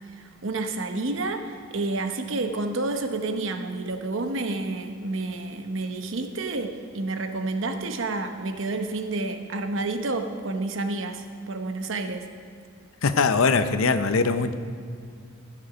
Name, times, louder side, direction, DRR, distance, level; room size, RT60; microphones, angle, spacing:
voice 1, 0.1-12.3, right 2 dB, 65° right, 6 dB, 0.9 m, -29 dB
voice 2, 13.0-14.5, left 4 dB, 85° left, 10 dB, 0.7 m, -21 dB
15.5 x 7.6 x 5.0 m, 2.2 s
head